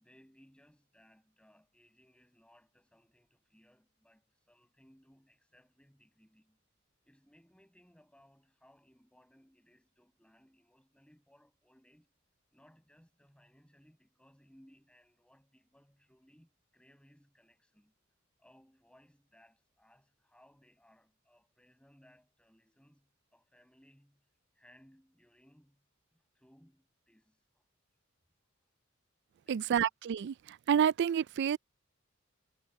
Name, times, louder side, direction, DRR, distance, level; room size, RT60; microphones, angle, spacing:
voice 1, 0.0-6.6 7.0-12.1 12.5-17.9 18.4-24.3 24.5-25.8 26.1-27.6 29.4-29.8, equal, 5° left, 6.7 m, -65 dB
voice 2, 29.5-30.3 30.7-31.6, right 8 dB, 60° right, 0.3 m, -28 dB
head